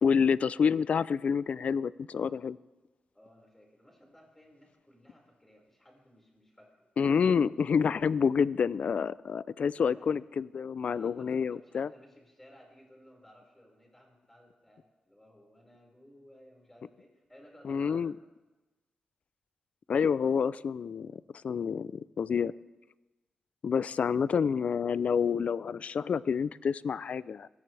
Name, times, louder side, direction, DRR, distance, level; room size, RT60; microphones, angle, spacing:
voice 1, 0.0-2.6 7.0-11.9 17.6-18.1 19.9-22.5 23.6-27.5, left 6 dB, 60° left, 19 dB, 0.4 m, -28 dB
voice 2, 3.1-6.8 9.9-10.2 10.8-18.1, equal, 10° left, -1 dB, 5.0 m, -58 dB
21.0 x 16.5 x 3.4 m, 1.2 s
cardioid pair, 80°, 2 cm